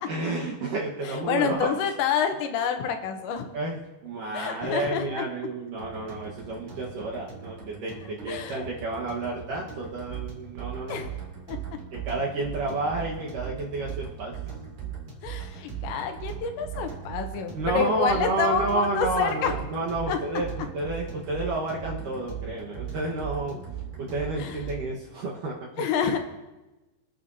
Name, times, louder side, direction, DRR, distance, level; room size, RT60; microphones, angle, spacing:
voice 1, 0.1-1.7 3.5-11.1 11.9-14.3 17.5-23.6 24.0-25.7, right 2 dB, 65° right, -3 dB, 2.3 m, -30 dB
voice 2, 1.0-3.5 4.3-5.3 8.0-8.6 10.9-11.2 11.5-11.6 15.2-19.5 20.1-20.2 24.4-24.6 25.8-26.2, left 7 dB, 75° left, 6 dB, 3.1 m, -28 dB
sound 1, 5.8-25.0, right 3 dB, 35° right, 2.9 m, -44 dB
sound 2, 10.1-24.9, right 13 dB, 80° right, 3.2 m, -36 dB
26.5 x 9.1 x 2.7 m, 1.1 s
omnidirectional pair, 5.4 m